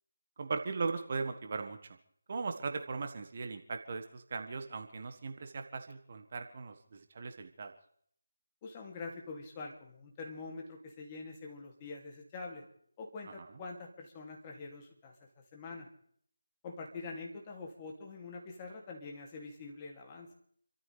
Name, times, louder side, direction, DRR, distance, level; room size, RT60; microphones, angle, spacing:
voice 1, 0.4-1.8 2.3-7.7 13.3-13.5, right 4 dB, 40° right, 5 dB, 1.6 m, -38 dB
voice 2, 8.6-12.6 13.0-15.1 15.5-15.9 16.6-20.3, left 3 dB, 20° left, 1 dB, 2.6 m, -45 dB
29.0 x 14.0 x 3.4 m, 0.63 s
figure-of-eight pair, 160°, 0 cm